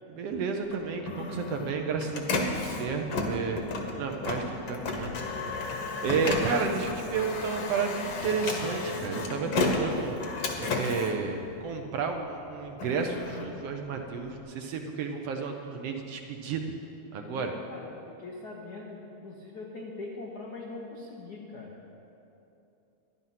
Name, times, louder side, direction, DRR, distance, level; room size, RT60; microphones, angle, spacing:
voice 1, 0.1-5.7 6.0-10.2 10.6-16.6 17.1-17.5, right 5 dB, 70° right, 4 dB, 1.6 m, -32 dB
Printer, 0.6-12.1 12.5-14.4, left 3 dB, 55° left, 1.5 m, -33 dB
voice 2, 17.2-21.8, left 3 dB, 85° left, -1 dB, 0.8 m, -42 dB
12.5 x 11.0 x 5.7 m, 2.9 s
omnidirectional pair, 3.3 m